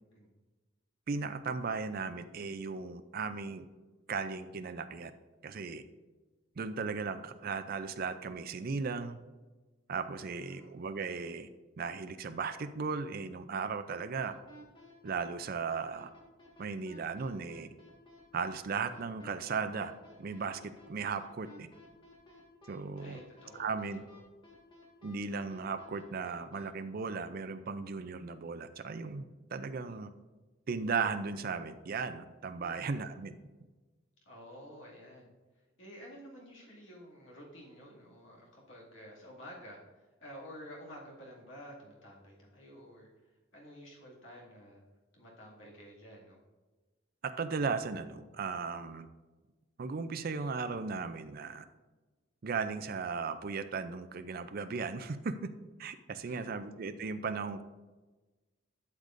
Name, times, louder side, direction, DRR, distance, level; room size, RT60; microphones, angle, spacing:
voice 1, 1.1-3.7 4.1-5.1 5.4-5.8 6.6-9.2 9.9-11.5 11.8-14.3 15.0-16.1 16.6-17.7 18.3-19.9 20.2-20.6 20.9-21.7 22.7-23.2 23.5-24.0 25.0-29.2 29.5-30.1 30.7-33.3 47.2-49.1 49.8-51.6 52.4-55.5 55.8-57.6, right 5 dB, 45° right, 10 dB, 0.4 m, -36 dB
voice 2, 10.1-10.8 23.0-24.2 32.6-33.0 34.3-35.3 35.8-43.1 43.5-44.8 45.1-46.4 56.2-56.6, equal, 65° left, -3 dB, 2.2 m, -51 dB
sound 1, 14.2-26.6, left 1 dB, 25° left, 1.7 m, -56 dB
11.5 x 6.6 x 2.6 m, 1.2 s
head